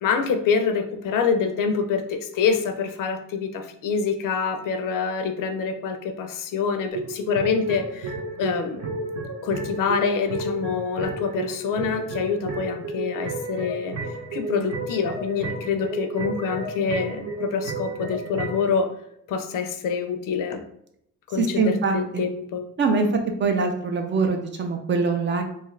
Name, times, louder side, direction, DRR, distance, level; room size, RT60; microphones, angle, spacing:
voice 1, 0.0-8.9 9.4-14.0 14.3-18.9 19.3-20.6 21.3-22.7, left 5 dB, 80° left, 7 dB, 0.5 m, -26 dB
sound 1, 6.9-18.7, right 2 dB, 60° right, 0.8 m, -32 dB
voice 2, 21.4-22.2 22.8-23.1 23.4-25.4, right 4 dB, 35° right, 4 dB, 0.4 m, -23 dB
2.7 x 2.4 x 3.1 m, 0.74 s
cardioid pair, 160°, 32 cm